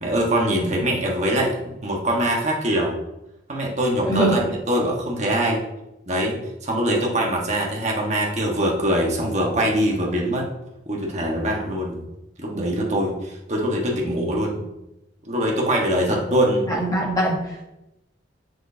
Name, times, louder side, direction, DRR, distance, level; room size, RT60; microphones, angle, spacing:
voice 1, 0.0-2.9 3.5-4.4 4.7-5.6 6.1-10.5 10.8-12.0 12.4-14.7 15.3-16.7, right 1 dB, 40° right, -1 dB, 1.5 m, -23 dB
voice 2, 4.1-4.4 16.7-17.7, right 1 dB, 20° left, -3 dB, 1.8 m, -22 dB
7.3 x 6.2 x 2.8 m, 0.92 s
head